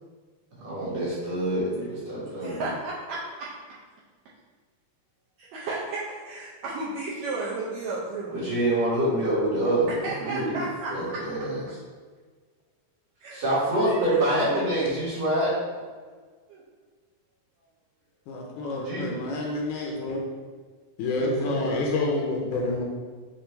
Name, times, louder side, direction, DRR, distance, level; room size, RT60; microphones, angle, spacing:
voice 1, 0.6-2.6 8.3-10.6 10.9-11.6 13.3-15.8 18.8-19.1 21.1-21.6, right 1 dB, 55° right, -9 dB, 2.4 m, -26 dB
voice 2, 2.4-3.5 5.4-8.4 10.0-11.2 13.2-13.4 13.8-14.1 14.5-14.6 16.5-16.6 19.2-19.4, right 3 dB, 75° right, -6 dB, 1.7 m, -33 dB
voice 3, 18.3-20.2 21.0-22.8, left 2 dB, 80° left, -1 dB, 1.9 m, -28 dB
6.1 x 2.6 x 3.2 m, 1.5 s
omnidirectional pair, 3.7 m